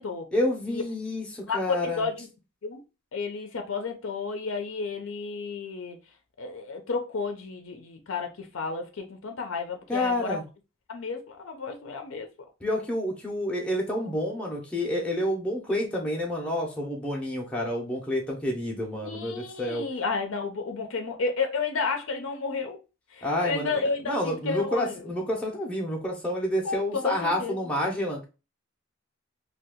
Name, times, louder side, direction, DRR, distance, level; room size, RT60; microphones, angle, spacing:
voice 1, 0.3-2.0 9.9-10.4 12.6-19.9 23.2-23.7 24.0-28.2, left 1 dB, 5° left, 0.6 m, -29 dB
voice 2, 1.5-2.3 2.6-2.8 3.1-6.0 6.4-10.4 10.9-12.3 19.0-22.8 23.1-25.1 26.6-27.6, left 4 dB, 75° left, 0.5 m, -32 dB
2.7 x 2.3 x 3.5 m
head